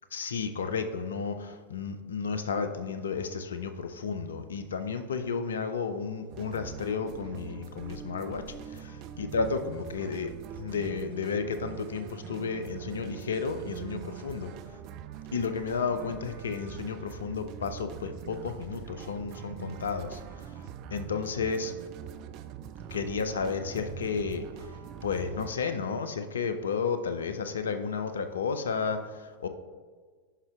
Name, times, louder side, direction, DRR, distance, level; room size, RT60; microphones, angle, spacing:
voice 1, 0.1-8.9 9.2-10.3 10.6-14.5 15.3-20.7 20.9-21.7 22.9-24.7 25.0-29.5, left 5 dB, 65° left, 9 dB, 0.5 m, -32 dB
sound 1, 6.3-25.5, right 9 dB, 40° right, 0.3 m, -43 dB
11.0 x 5.2 x 2.3 m, 1.5 s
figure-of-eight pair, 90°, 0 cm